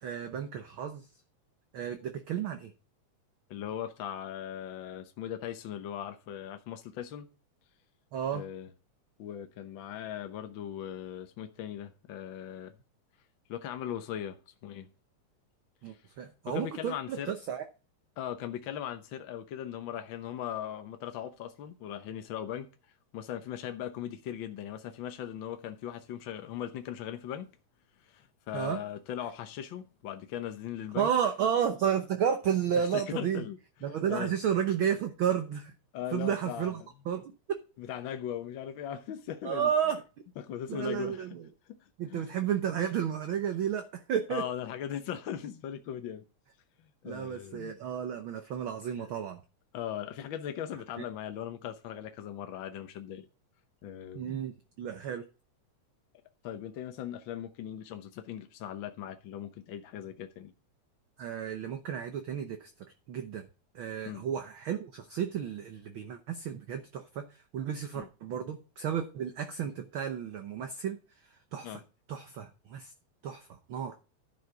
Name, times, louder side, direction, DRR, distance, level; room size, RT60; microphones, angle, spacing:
voice 1, 0.0-1.0 1.7-2.7 8.1-8.4 15.8-17.6 28.5-28.8 30.9-33.4 33.8-35.7 36.1-37.3 39.4-40.0 40.7-41.4 42.0-44.4 47.0-49.4 54.1-55.2 61.2-62.7 63.1-63.4 63.7-67.3 67.5-71.0 71.5-71.8 72.1-72.9 73.2-73.9, right 8 dB, 65° right, 1.3 m, -32 dB
voice 2, 3.5-7.3 8.3-8.7 9.2-12.7 13.5-14.4 14.6-14.9 15.9-16.0 16.5-17.3 18.2-22.7 23.1-27.5 28.0-31.1 32.8-34.3 35.9-36.9 37.8-39.7 40.4-41.3 41.7-41.8 42.1-42.3 44.3-46.2 47.0-47.7 49.0-49.1 49.7-53.3 53.8-54.4 56.4-60.5 64.1-64.2 67.9-68.1 71.6-71.8, left 10 dB, 75° left, 1.1 m, -39 dB
11.0 x 6.6 x 4.7 m
omnidirectional pair, 3.3 m